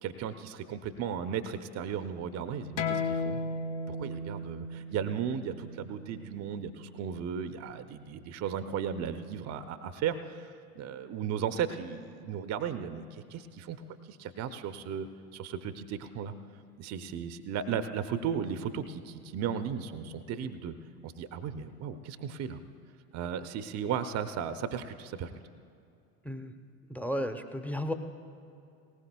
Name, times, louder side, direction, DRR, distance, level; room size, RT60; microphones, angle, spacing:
voice 1, 0.0-3.4 3.9-13.8 14.0-16.3 16.8-20.7 21.0-22.6 23.1-25.3, right 8 dB, 35° right, 10 dB, 0.7 m, -35 dB
sound 1, 2.8-7.9, left 3 dB, 50° left, 1.2 m, -36 dB
voice 2, 26.9-27.9, equal, 5° left, 7 dB, 0.7 m, -33 dB
19.5 x 18.0 x 2.3 m, 2.5 s
figure-of-eight pair, 70°, 48 cm